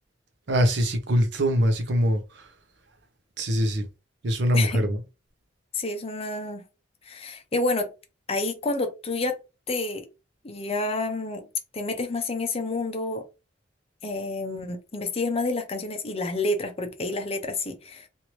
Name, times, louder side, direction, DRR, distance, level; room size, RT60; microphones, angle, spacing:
voice 1, 0.5-2.5 3.4-3.9 4.2-5.0, equal, 65° right, 0.7 m, -23 dB
voice 2, 4.5-4.9 5.7-6.6 7.0-7.9 8.3-9.4 9.7-10.1 10.4-11.5 11.7-13.2 14.0-18.1, left 2 dB, 35° left, 0.6 m, -29 dB
3.0 x 2.6 x 3.0 m
head